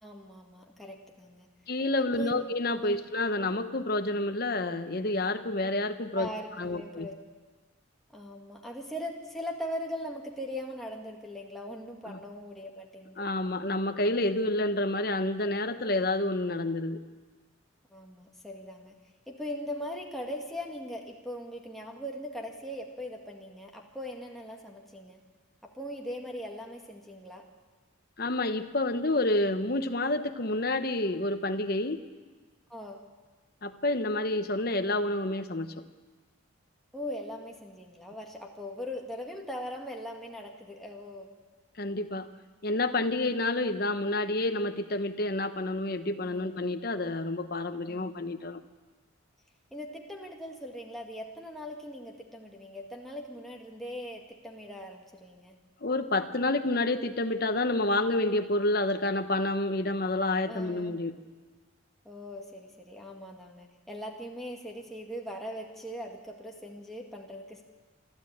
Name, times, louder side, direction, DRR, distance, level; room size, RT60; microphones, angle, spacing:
voice 1, 0.0-1.5 2.1-2.4 2.8-3.0 6.1-7.2 8.1-13.2 15.6-15.7 17.9-18.9 19.3-25.2 25.7-27.4 32.7-33.0 36.9-41.3 46.2-46.5 47.8-48.1 49.7-55.5 60.5-60.9 62.0-67.6, equal, ahead, -1 dB, 1.8 m, -40 dB
voice 2, 1.7-6.3 6.6-7.1 12.1-12.2 13.2-17.0 28.2-32.0 33.6-35.7 41.8-42.3 42.6-48.6 55.8-61.1, left 2 dB, 45° left, 8 dB, 1.0 m, -29 dB
26.5 x 12.5 x 8.7 m, 1.3 s
head